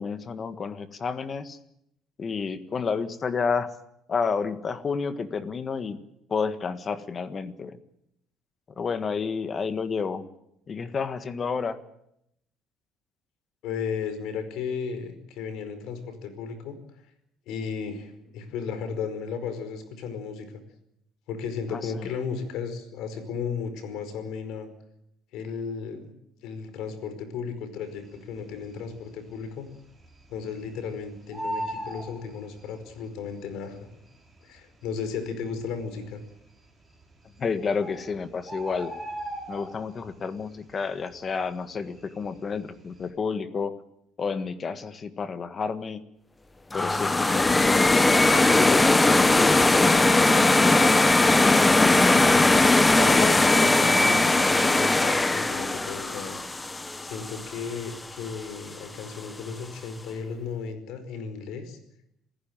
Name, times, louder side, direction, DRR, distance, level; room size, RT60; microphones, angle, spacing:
voice 1, 0.0-1.6 2.2-3.7 4.1-6.0 6.3-7.8 8.8-10.2 10.7-11.8 21.7-22.1 37.4-38.9 39.5-43.7 44.2-46.0 46.7-48.3 48.6-51.2, left 5 dB, 25° left, 12 dB, 1.5 m, -30 dB
voice 2, 13.6-16.8 17.5-20.6 21.3-24.7 25.3-26.1 26.4-29.7 30.3-33.9 34.4-36.2 53.0-56.4 57.0-61.8, left 6 dB, 70° left, 10 dB, 4.9 m, -34 dB
Bird, 28.4-29.0 29.3-29.4 29.7-30.9 31.1-33.0 33.8-33.9 34.6-34.7 34.8-35.0 35.6-36.1 37.0-37.1 37.5-37.6 37.8-40.1 40.4-40.8 41.1-42.4 42.8-43.0, right 1 dB, 5° right, 5.4 m, -36 dB
sound 1, 46.7-57.7, left 2 dB, 10° left, 1.0 m, -20 dB
27.5 x 15.5 x 8.9 m, 0.78 s
cardioid pair, 160°, 0 cm